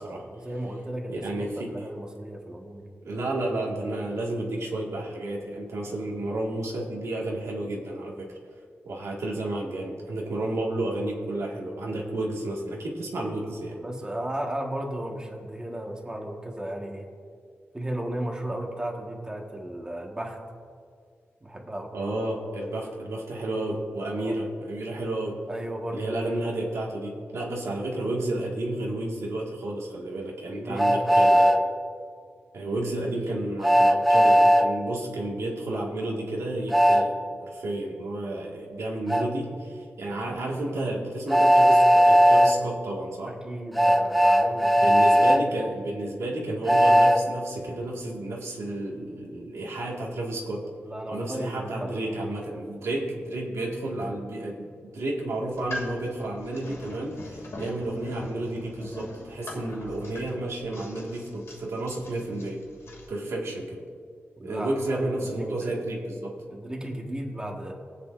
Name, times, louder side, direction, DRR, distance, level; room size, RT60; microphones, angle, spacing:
voice 1, 0.0-2.9 13.7-17.1 17.7-20.4 21.4-21.9 24.2-24.4 25.5-26.1 30.4-31.3 43.3-44.8 50.8-52.7 64.4-66.0 66.5-67.7, right 1 dB, 15° right, 0 dB, 1.4 m, -35 dB
voice 2, 1.1-1.7 3.0-8.3 8.9-13.8 21.9-25.4 25.9-31.5 32.5-37.2 37.5-43.4 44.8-50.7 51.1-54.7 54.9-62.6 63.1-63.8 64.4-66.4, right 1 dB, 85° right, -2 dB, 1.7 m, -31 dB
Train, 30.8-31.6 33.6-34.7 36.7-37.0 39.1-39.2 41.3-42.5 43.7-45.4 46.7-47.2, equal, ahead, 0.7 m, -17 dB
sound 1, 55.4-63.1, left 1 dB, 75° left, 2.7 m, -42 dB
23.0 x 8.1 x 2.5 m, 2.2 s
wide cardioid pair, 120°, 5 cm